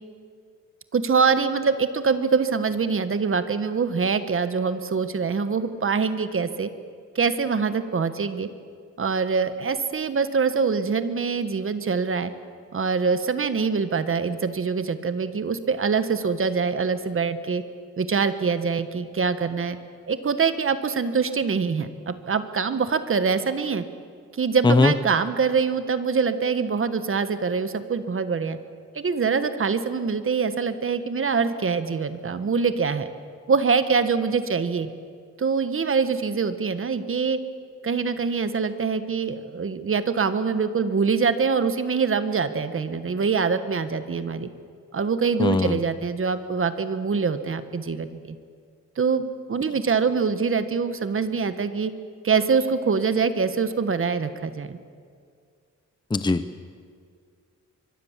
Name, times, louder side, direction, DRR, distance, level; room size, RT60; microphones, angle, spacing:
voice 1, 0.9-6.7 7.1-8.5 9.0-12.3 12.7-17.6 18.0-19.8 20.1-23.8 24.3-28.6 28.9-33.1 33.5-34.9 35.4-37.4 37.8-44.5 44.9-48.4 49.0-49.2 49.5-51.9 52.2-54.8, right 5 dB, 45° right, 11 dB, 1.4 m, -24 dB
voice 2, 45.4-45.8 56.1-56.6, left 3 dB, 15° left, 11 dB, 0.7 m, -20 dB
24.5 x 23.0 x 7.4 m, 2.1 s
wide cardioid pair, 140°, 31 cm